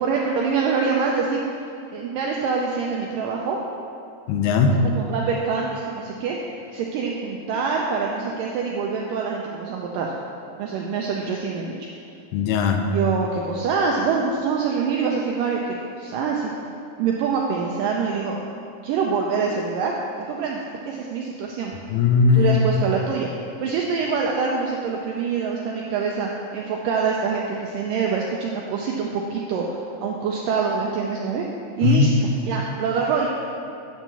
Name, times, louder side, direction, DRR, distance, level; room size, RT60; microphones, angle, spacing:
voice 1, 0.0-1.4 1.9-3.6 4.8-10.1 10.6-11.9 12.9-16.5 17.0-18.4 18.8-19.9 20.2-21.7 22.3-23.3 23.6-31.5 31.8-33.3, right 5 dB, 85° right, -1 dB, 1.9 m, -25 dB
voice 2, 4.3-4.8 12.3-12.8 21.9-22.6 31.8-32.1, left 5 dB, 80° left, 4 dB, 2.6 m, -18 dB
9.4 x 4.5 x 6.9 m, 2.6 s
omnidirectional pair, 4.6 m